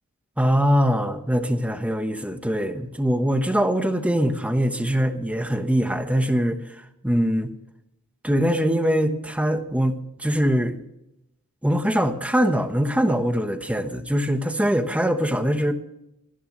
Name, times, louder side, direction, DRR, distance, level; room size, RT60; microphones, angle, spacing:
voice 1, 0.4-6.8 7.0-7.5 8.2-10.8 11.6-15.7, equal, 5° right, 8 dB, 1.1 m, -22 dB
27.0 x 11.0 x 3.2 m, 0.84 s
head